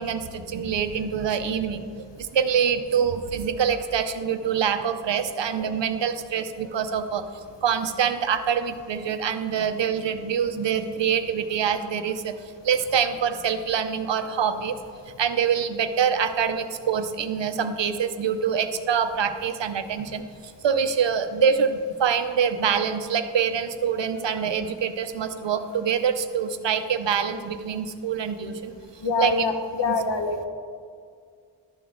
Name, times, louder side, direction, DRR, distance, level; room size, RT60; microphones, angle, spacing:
voice 1, 0.0-12.4 12.6-14.8 15.2-20.3 20.6-28.7 29.2-29.5 29.9-30.0, right 7 dB, 90° right, 9 dB, 0.7 m, -25 dB
voice 2, 29.0-30.4, left 4 dB, 80° left, 6 dB, 1.0 m, -25 dB
12.0 x 7.0 x 3.7 m, 2.1 s
wide cardioid pair, 70°, 42 cm